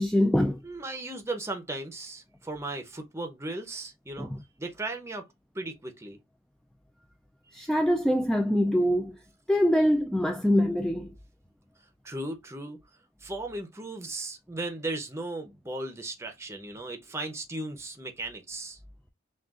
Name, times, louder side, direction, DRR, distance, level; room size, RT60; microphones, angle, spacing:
voice 1, 0.0-0.6 4.2-4.4 7.5-9.2 9.5-11.1, equal, 5° left, 0.3 m, -24 dB
voice 2, 0.6-4.3 4.6-5.3 5.5-6.2 12.0-12.8 13.2-18.8, right 2 dB, 15° right, 0.7 m, -36 dB
6.0 x 2.4 x 2.4 m
head